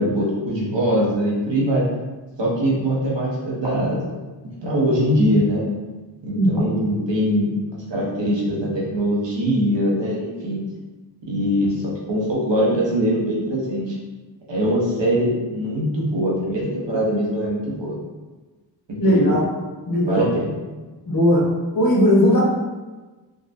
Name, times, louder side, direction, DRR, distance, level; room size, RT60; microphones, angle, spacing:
voice 1, 0.0-1.8 2.4-4.1 4.6-5.7 6.2-7.5 7.9-10.6 11.2-14.0 14.5-17.9 18.9-19.3 20.0-20.6, equal, 75° right, -5 dB, 1.0 m, -22 dB
voice 2, 6.3-6.6 19.0-19.4 19.9-20.3 21.1-21.5 21.7-22.4, equal, 50° left, -5 dB, 1.1 m, -17 dB
3.7 x 2.3 x 2.6 m, 1.2 s
wide cardioid pair, 70°, 44 cm